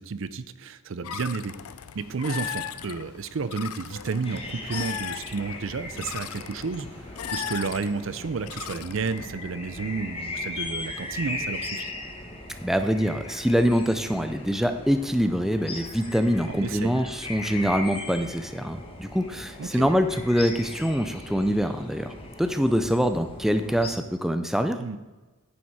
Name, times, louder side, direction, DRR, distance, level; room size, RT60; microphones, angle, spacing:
voice 1, 0.0-1.5 1.9-11.9 16.5-17.0 19.6-19.9 24.8-25.0, right 4 dB, 60° right, 14 dB, 0.5 m, -31 dB
sound 1, 1.0-9.3, left 9 dB, 90° left, 0.5 m, -38 dB
sound 2, 4.2-23.9, left 2 dB, 25° left, 1.5 m, -38 dB
voice 2, 12.6-22.1 22.4-24.8, equal, ahead, 8 dB, 0.4 m, -24 dB
9.7 x 7.3 x 4.7 m, 1.2 s
head